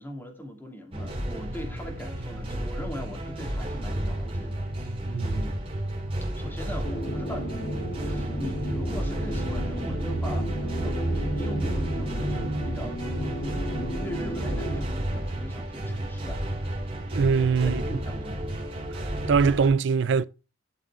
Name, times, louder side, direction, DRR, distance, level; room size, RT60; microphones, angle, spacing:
voice 1, 0.0-5.6 6.3-13.0 13.4-13.6 14.0-16.4 17.6-18.4, equal, 10° left, 2.7 m, -40 dB
sound 1, 0.9-19.7, right 1 dB, 30° right, 3.5 m, -31 dB
sound 2, 6.8-14.8, right 1 dB, 90° left, 3.3 m, -33 dB
voice 2, 17.1-17.8 19.3-20.2, right 5 dB, 70° right, 0.4 m, -22 dB
12.5 x 6.2 x 3.7 m
head